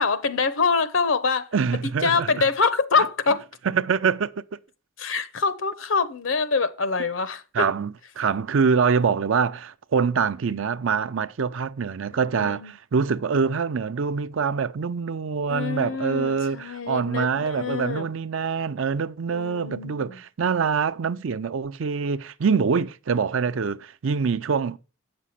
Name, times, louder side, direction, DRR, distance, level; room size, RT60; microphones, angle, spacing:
voice 1, 0.0-3.4 5.0-7.7 12.3-12.7 15.5-18.1 19.3-20.2, left 4 dB, 75° left, 0.9 m, -25 dB
voice 2, 1.5-2.3 3.7-4.4 7.5-24.8, right 5 dB, 75° right, 0.5 m, -25 dB
8.3 x 6.2 x 5.5 m
head